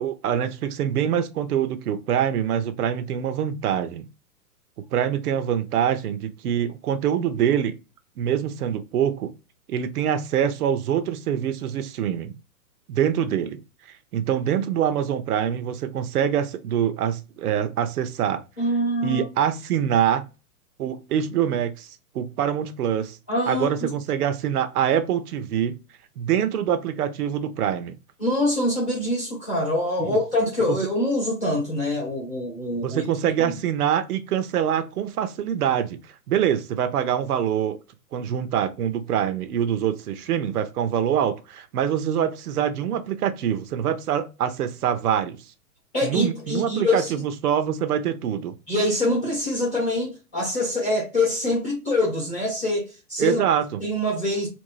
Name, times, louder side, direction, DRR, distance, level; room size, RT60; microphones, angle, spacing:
voice 1, 0.0-4.1 4.9-7.7 8.2-9.3 9.7-12.4 12.9-13.6 14.1-18.4 19.0-20.2 20.8-21.9 22.1-23.2 23.5-25.7 26.2-27.9 30.0-30.2 32.8-36.0 36.3-37.8 38.1-45.4 46.0-48.5 53.2-53.7, right 9 dB, 75° right, 0.7 m, -24 dB
voice 2, 18.6-19.2 23.3-23.9 28.2-33.0 33.4-33.5 45.9-47.2 48.7-54.5, left 1 dB, 15° left, 0.9 m, -25 dB
3.0 x 2.7 x 3.1 m
hypercardioid pair, 165°, 46 cm